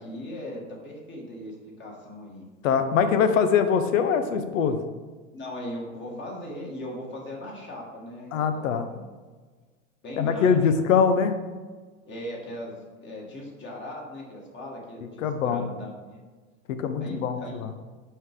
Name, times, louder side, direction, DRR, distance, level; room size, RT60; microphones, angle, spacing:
voice 1, 0.0-2.4 5.3-9.0 10.0-10.7 12.1-16.2 17.0-17.6, left 1 dB, 30° left, -2 dB, 1.8 m, -38 dB
voice 2, 2.6-4.8 8.3-8.9 10.2-11.3 15.2-15.7 16.8-17.7, left 6 dB, 80° left, 9 dB, 0.8 m, -23 dB
5.6 x 4.7 x 3.7 m, 1.4 s
hypercardioid pair, 110°, 39 cm